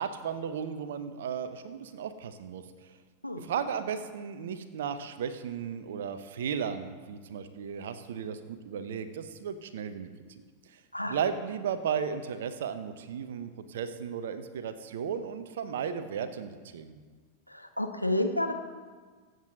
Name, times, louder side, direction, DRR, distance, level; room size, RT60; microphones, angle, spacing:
voice 1, 0.0-2.6 3.4-10.1 10.7-10.8 11.0-17.0, right 7 dB, 60° right, 10 dB, 1.1 m, -35 dB
voice 2, 17.5-18.5, left 1 dB, 90° left, 5 dB, 1.2 m, -30 dB
23.5 x 8.2 x 4.0 m, 1.5 s
figure-of-eight pair, 90°, 0 cm